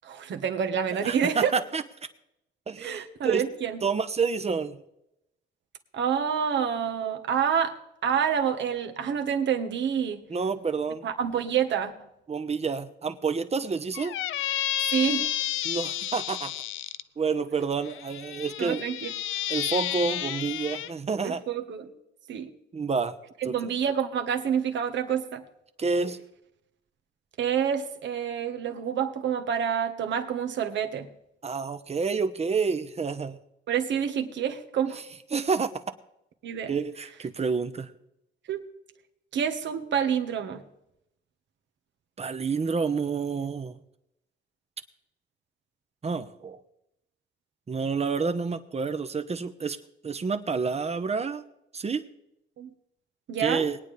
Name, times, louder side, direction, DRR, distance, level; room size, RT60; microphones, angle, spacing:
voice 1, 0.0-1.5 2.8-3.8 5.9-7.8 8.0-10.2 11.0-11.9 14.9-15.3 18.6-19.1 21.2-21.9 22.3-22.5 23.4-25.4 27.4-31.1 33.7-35.0 36.4-36.7 38.5-38.7 39.3-40.6 52.6-52.7 53.3-53.6, right 8 dB, 65° right, 6 dB, 1.4 m, -28 dB
voice 2, 1.0-1.8 2.7-3.5 3.8-4.8 10.3-11.0 12.3-14.2 15.6-16.5 17.2-18.9 19.5-21.4 22.7-23.2 23.4-23.5 25.8-26.2 31.4-33.4 35.3-35.9 36.7-37.9 42.2-43.8 46.0-46.6 47.7-49.8 50.0-51.4 51.7-52.0 53.4-53.8, right 5 dB, 30° right, 10 dB, 1.0 m, -29 dB
Squeak, 13.9-17.0 17.8-20.9, left 13 dB, 80° left, 0.5 m, -31 dB
21.0 x 9.3 x 3.4 m, 0.83 s
cardioid pair, 90°, 20 cm